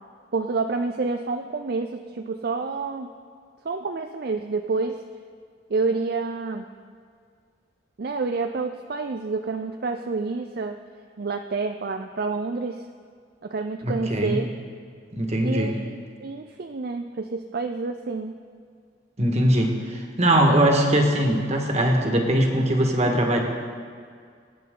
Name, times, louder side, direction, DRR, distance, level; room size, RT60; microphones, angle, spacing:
voice 1, 0.3-3.1 3.6-5.0 5.7-6.7 8.0-10.8 11.2-12.9 13.4-14.5 15.4-18.4, right 4 dB, 55° right, 6 dB, 0.5 m, -28 dB
voice 2, 13.8-14.4 15.1-15.8 19.2-23.4, right 1 dB, 35° right, 2 dB, 1.7 m, -21 dB
22.0 x 9.7 x 3.9 m, 2.1 s
head